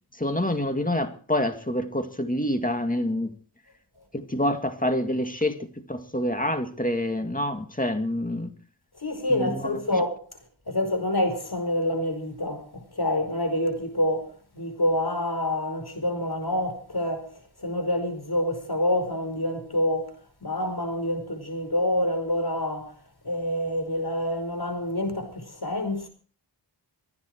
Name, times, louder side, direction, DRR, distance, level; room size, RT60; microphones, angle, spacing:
voice 1, 0.2-3.3 4.1-8.5 9.3-10.0, left 1 dB, 15° left, 2.2 m, -27 dB
voice 2, 9.0-10.2 10.7-17.3 17.6-20.1 20.4-23.0 23.2-26.1, left 1 dB, 50° left, 5.3 m, -27 dB
25.5 x 9.6 x 4.6 m
wide cardioid pair, 40°, 47 cm